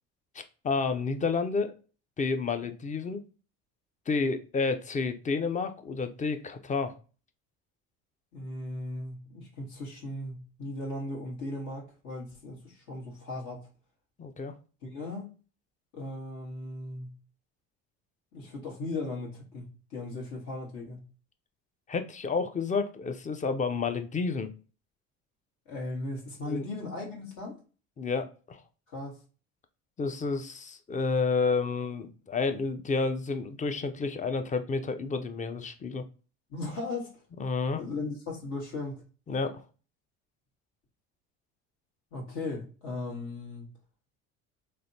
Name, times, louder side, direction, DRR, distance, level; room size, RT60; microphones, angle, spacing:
voice 1, 0.3-1.7 2.2-3.2 4.1-6.9 14.2-14.5 21.9-24.5 26.5-26.6 28.0-28.6 30.0-36.0 37.4-37.8 39.3-39.6, left 4 dB, 20° left, 8 dB, 0.5 m, -30 dB
voice 2, 8.3-13.7 14.8-15.3 15.9-17.1 18.3-21.0 25.7-27.6 28.9-29.2 36.5-37.1 37.8-39.0 42.1-43.7, left 2 dB, 70° left, -2 dB, 1.5 m, -37 dB
3.2 x 2.1 x 2.7 m, 0.36 s
hypercardioid pair, 75°, 34 cm